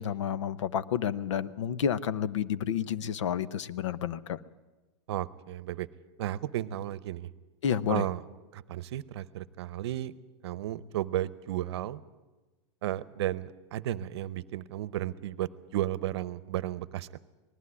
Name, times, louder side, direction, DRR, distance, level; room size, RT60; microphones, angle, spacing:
voice 1, 0.0-4.4 7.6-8.0, left 8 dB, 90° left, 17 dB, 0.8 m, -30 dB
voice 2, 5.1-5.9 6.2-7.3 7.9-8.2 8.5-10.1 10.4-12.0 12.8-17.2, right 13 dB, 65° right, 17 dB, 0.8 m, -33 dB
19.5 x 14.0 x 9.7 m, 1.2 s
supercardioid pair, 165°, 15 cm